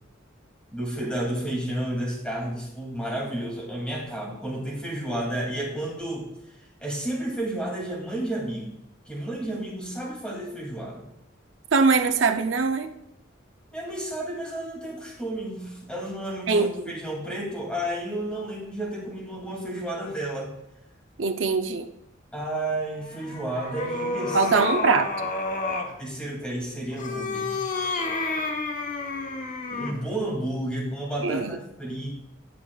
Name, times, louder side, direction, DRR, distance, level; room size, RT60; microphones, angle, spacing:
voice 1, 0.7-6.3 6.8-8.8 9.1-11.0 13.7-20.5 22.3-24.7 26.0-27.6 29.7-32.1, right 1 dB, 5° left, -2 dB, 2.6 m, -31 dB
voice 2, 11.7-12.9 16.5-16.7 21.2-21.9 24.3-25.3 31.2-31.6, right 4 dB, 75° right, 7 dB, 0.6 m, -22 dB
sound 1, 23.0-26.0 26.9-30.1, left 3 dB, 45° left, 1.0 m, -30 dB
17.5 x 6.2 x 2.4 m, 0.84 s
head